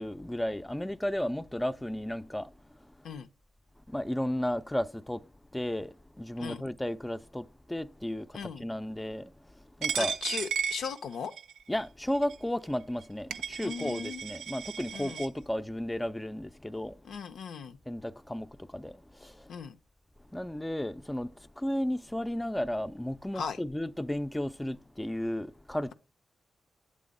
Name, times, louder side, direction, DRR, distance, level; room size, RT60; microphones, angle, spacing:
voice 1, 0.0-2.5 2.8-2.9 3.9-10.2 11.7-17.0 17.9-19.5 20.3-25.9, left 1 dB, 10° left, 0.4 m, -34 dB
voice 2, 8.3-8.6 10.0-11.3 13.6-14.2 14.9-15.2 17.0-17.8 19.5-19.8 23.3-23.6, left 6 dB, 75° left, 0.5 m, -38 dB
Coin (dropping), 9.8-11.6 12.2-12.4 13.0-13.1 13.3-15.3, right 7 dB, 85° right, 0.4 m, -35 dB
7.5 x 3.4 x 5.1 m
supercardioid pair, 40°, 0 cm